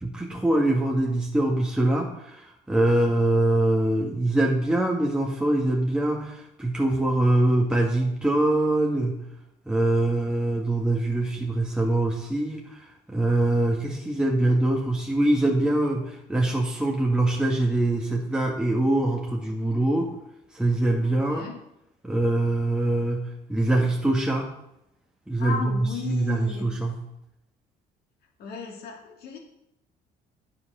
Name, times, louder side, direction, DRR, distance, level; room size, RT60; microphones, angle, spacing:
voice 1, 0.0-9.2 9.7-20.1 20.5-21.5 22.0-24.5 25.3-27.0, right 1 dB, 5° right, -2 dB, 1.6 m, -24 dB
voice 2, 21.0-21.6 25.4-26.7 28.4-29.4, left 6 dB, 70° left, 1 dB, 2.8 m, -35 dB
9.5 x 7.9 x 6.1 m, 0.82 s
cardioid pair, 110°, 17 cm